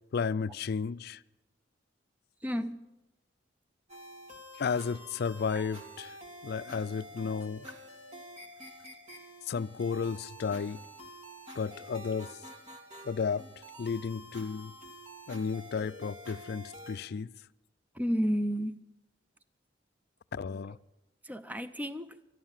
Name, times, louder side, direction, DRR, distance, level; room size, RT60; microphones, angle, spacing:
voice 1, 0.1-1.2 4.6-6.1 6.4-7.7 9.5-10.8 11.6-12.3 13.1-13.4 13.8-14.7 15.3-17.3 20.3-20.8, left 5 dB, 60° left, 0.4 m, -33 dB
voice 2, 2.4-2.8 5.5-5.7 17.9-18.8 20.7-20.8 21.2-22.2, equal, 10° right, 0.6 m, -32 dB
sound 1, 3.9-17.0, equal, 40° right, 2.3 m, -48 dB
13.0 x 11.5 x 7.3 m
head